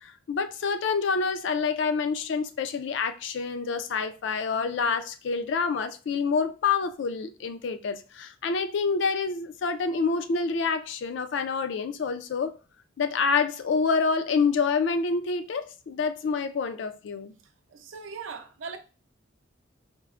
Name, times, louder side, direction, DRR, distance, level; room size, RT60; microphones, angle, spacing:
voice 1, 0.0-12.5 13.0-17.3, left 5 dB, 65° left, 0.4 m, -27 dB
voice 2, 17.4-18.8, right 5 dB, 80° right, 0.5 m, -40 dB
4.5 x 2.0 x 2.4 m
head